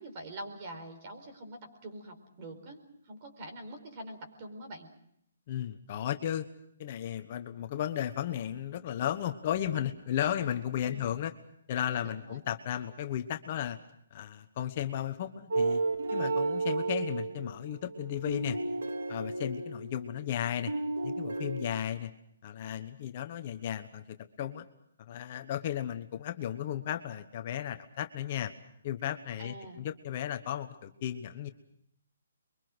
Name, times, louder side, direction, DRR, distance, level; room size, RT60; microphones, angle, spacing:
voice 1, 0.0-4.9 10.9-11.2 11.9-12.4 29.4-29.8, right 1 dB, 30° right, 5 dB, 4.6 m, -45 dB
voice 2, 5.5-6.5 6.8-11.3 11.7-13.8 14.1-15.8 16.1-18.6 19.1-20.7 21.0-22.1 22.4-24.6 25.1-28.5 28.8-31.5, left 10 dB, 35° left, 7 dB, 1.1 m, -34 dB
sound 1, 15.5-20.4 20.7-21.8, right 3 dB, 90° right, 3.7 m, -33 dB
28.0 x 23.5 x 6.2 m, 0.72 s
hypercardioid pair, 165°, 0 cm